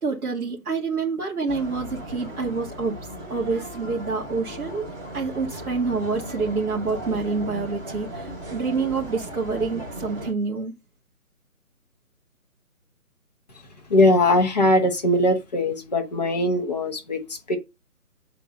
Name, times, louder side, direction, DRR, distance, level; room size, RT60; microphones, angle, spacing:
voice 1, 0.0-3.0 3.3-4.8 5.1-10.7, right 4 dB, 80° right, 2.3 m, -27 dB
sound 1, 1.5-10.3, right 1 dB, 20° right, 2.8 m, -36 dB
voice 2, 13.9-17.6, left 1 dB, 25° left, 1.4 m, -21 dB
7.9 x 4.6 x 5.3 m
hypercardioid pair, 170°, 45 cm